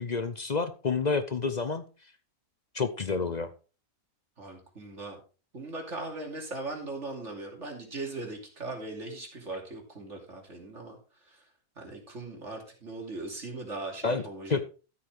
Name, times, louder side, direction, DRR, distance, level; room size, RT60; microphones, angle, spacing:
voice 1, 0.0-1.8 2.7-3.5 14.0-14.2 14.5-14.6, left 4 dB, 45° left, 11 dB, 0.6 m, -29 dB
voice 2, 4.4-5.2 5.5-11.0 11.3-11.4 11.8-14.6, right 2 dB, 55° right, 1 dB, 3.1 m, -39 dB
13.0 x 8.5 x 3.4 m, 0.34 s
omnidirectional pair, 1.5 m